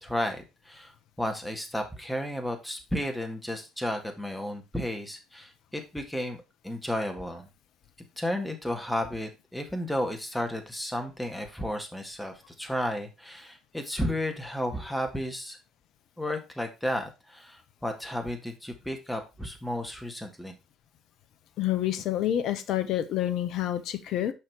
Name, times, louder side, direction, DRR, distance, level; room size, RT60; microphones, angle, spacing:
voice 1, 0.0-0.9 1.2-7.5 8.2-15.6 16.2-20.6, equal, 5° left, 4 dB, 2.0 m, -33 dB
voice 2, 21.6-24.3, left 12 dB, 60° left, 12 dB, 0.8 m, -28 dB
5.7 x 4.7 x 4.7 m, 0.26 s
hypercardioid pair, 55°, 0 cm